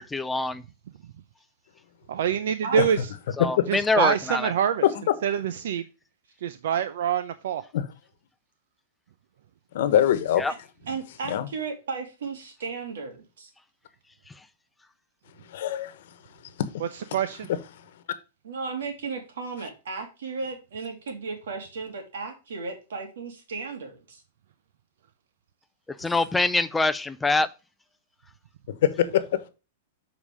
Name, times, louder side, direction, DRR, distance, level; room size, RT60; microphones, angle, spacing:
voice 1, 0.1-0.6 3.4-4.5 10.4-10.5 26.0-27.5, left 3 dB, 5° left, 0.4 m, -24 dB
voice 2, 2.1-3.1 3.7-4.8 5.2-5.8 6.4-7.7 16.8-17.5, right 8 dB, 70° right, 0.6 m, -25 dB
voice 3, 9.7-10.4 11.2-11.5 15.5-15.9 16.6-16.7 28.8-29.2, left 10 dB, 65° left, 1.1 m, -22 dB
voice 4, 10.9-13.5 18.4-24.2, right 4 dB, 90° right, 2.8 m, -35 dB
7.3 x 4.9 x 4.9 m
supercardioid pair, 160°, 0 cm